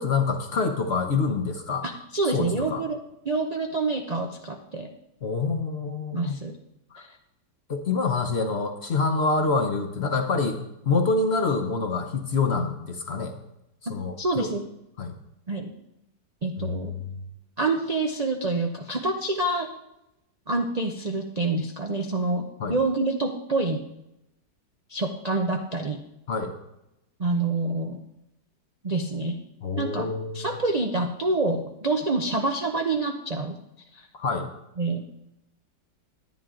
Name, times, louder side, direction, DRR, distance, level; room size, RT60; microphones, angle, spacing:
voice 1, 0.0-1.8 2.3-2.8 5.2-6.4 6.9-7.1 7.7-13.3 13.9-14.5 15.0-15.2 16.6-17.1 22.6-22.8 26.3-26.5 29.6-30.5 34.1-34.5, left 4 dB, 50° left, 6 dB, 0.8 m, -26 dB
voice 2, 1.8-3.0 3.3-4.9 6.1-6.6 7.0-7.2 14.2-14.7 15.5-15.7 16.4-16.9 17.6-19.7 20.5-23.8 24.9-26.0 27.2-28.0 28.8-29.4 29.8-30.1 30.3-33.5 33.9-34.1 34.8-35.0, right 2 dB, 75° right, 3 dB, 0.3 m, -27 dB
10.5 x 10.0 x 3.7 m, 0.87 s
omnidirectional pair, 1.9 m